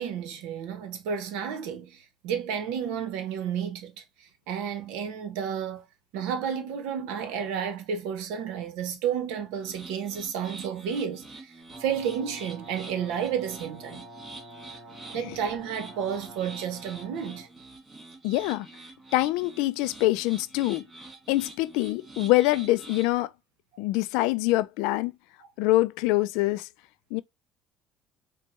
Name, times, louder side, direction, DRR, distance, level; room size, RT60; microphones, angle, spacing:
voice 1, 0.0-5.8 6.1-11.5 11.8-14.1 15.1-17.5, right 8 dB, 85° right, 0.8 m, -31 dB
sound 1, 9.6-23.1, right 2 dB, 10° right, 2.2 m, -46 dB
Brass instrument, 11.7-17.5, right 1 dB, 45° right, 2.6 m, -48 dB
voice 2, 18.2-18.7 19.1-20.8 21.3-23.3 23.8-25.1 25.6-26.7 27.1-27.2, left 18 dB, 80° left, 0.3 m, -25 dB
4.5 x 2.2 x 2.9 m
supercardioid pair, 100°, 0 cm